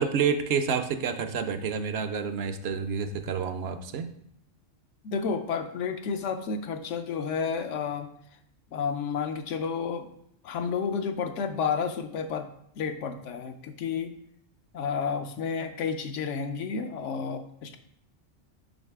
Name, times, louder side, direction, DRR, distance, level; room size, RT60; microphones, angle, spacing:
voice 1, 0.0-4.1, right 6 dB, 65° right, 9 dB, 0.7 m, -29 dB
voice 2, 5.0-8.1 8.7-10.1 10.4-12.5 12.8-14.1 14.7-17.8, left 6 dB, 75° left, 8 dB, 1.0 m, -31 dB
6.4 x 5.6 x 3.5 m, 0.70 s
omnidirectional pair, 1.3 m